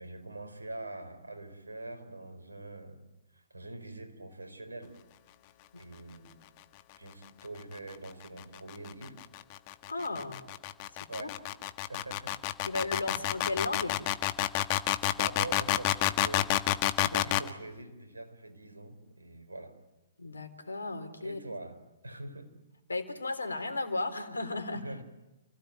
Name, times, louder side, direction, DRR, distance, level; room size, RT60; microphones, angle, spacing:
voice 1, 0.0-3.0 3.3-5.0 5.8-6.4 7.0-9.1 11.1-11.4 11.9-12.5 13.1-13.2 14.8-16.5 17.0-19.7 21.2-21.8 22.0-22.6 24.7-25.0, right 2 dB, 90° right, 7 dB, 4.8 m, -44 dB
sound 1, 8.2-17.5, left 14 dB, 40° left, 1.4 m, -29 dB
voice 2, 9.9-10.4 11.2-11.3 12.6-14.0 17.0-17.2 20.2-21.4 22.9-24.8, left 2 dB, 85° left, 9 dB, 3.6 m, -35 dB
29.5 x 17.0 x 9.3 m, 0.98 s
figure-of-eight pair, 120°, 0 cm